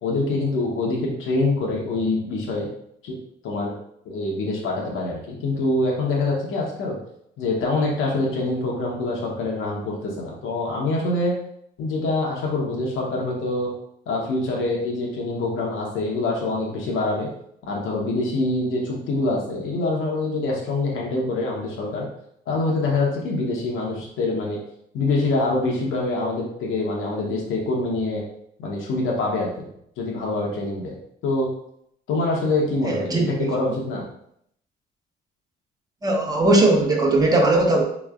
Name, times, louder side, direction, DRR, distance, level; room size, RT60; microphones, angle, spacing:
voice 1, 0.0-2.7 3.0-3.2 3.4-3.8 4.0-7.0 7.4-11.3 11.8-13.7 14.1-17.3 17.7-22.0 22.5-24.6 24.9-28.2 28.6-29.7 30.0-31.0 31.2-31.5 32.1-34.0, left 2 dB, 85° left, -2 dB, 0.9 m, -25 dB
voice 2, 32.8-33.5 36.0-37.8, right 2 dB, 20° right, 0 dB, 0.8 m, -19 dB
4.2 x 3.0 x 2.4 m, 0.71 s
cardioid pair, 90°, 20 cm